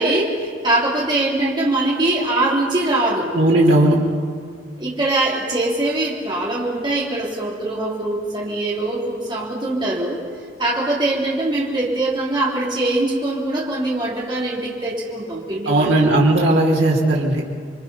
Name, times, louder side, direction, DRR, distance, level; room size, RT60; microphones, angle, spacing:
voice 1, 0.0-3.3 4.8-10.2 10.6-16.0, right 2 dB, 25° right, -5 dB, 3.5 m, -22 dB
voice 2, 3.3-4.0 15.7-17.4, right 1 dB, 75° right, -4 dB, 3.5 m, -16 dB
29.0 x 23.5 x 5.6 m, 2.1 s
head